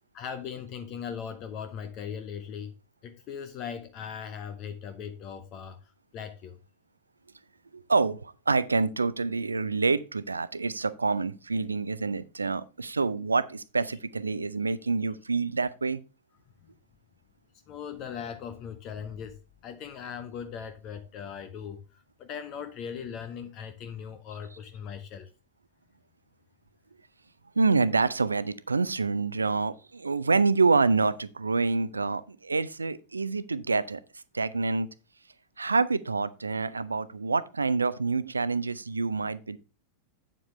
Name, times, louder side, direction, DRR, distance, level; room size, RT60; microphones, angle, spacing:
voice 1, 0.1-2.7 3.0-5.8 6.1-6.6 17.7-25.3, left 7 dB, 35° left, 0.9 m, -39 dB
voice 2, 7.7-16.0 27.6-34.0 34.3-34.9 35.6-39.6, right 4 dB, 80° right, 0.5 m, -27 dB
8.7 x 7.5 x 3.2 m
figure-of-eight pair, 90°, 0 cm